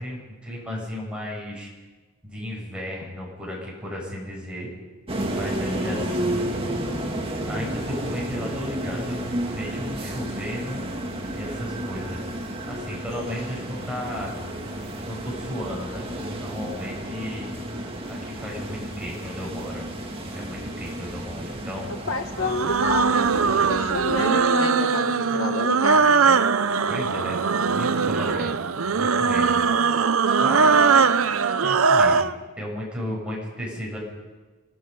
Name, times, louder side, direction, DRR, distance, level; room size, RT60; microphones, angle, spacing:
voice 1, 0.0-1.7 2.2-4.7 5.3-6.6 7.5-9.2 9.5-10.8 11.3-12.2 12.7-14.3 15.0-17.5 18.1-19.9 20.3-21.9 26.9-29.7 29.9-30.1 30.4-31.0 31.6-34.0, equal, 5° right, -3 dB, 7.0 m, -34 dB
sound 1, 5.1-24.3, right 1 dB, 25° right, 2.3 m, -32 dB
voice 2, 22.1-26.2, left 3 dB, 65° left, 5 dB, 1.2 m, -29 dB
sound 2, 22.4-32.3, right 5 dB, 80° right, 0.7 m, -20 dB
26.5 x 19.0 x 5.4 m, 1.3 s
head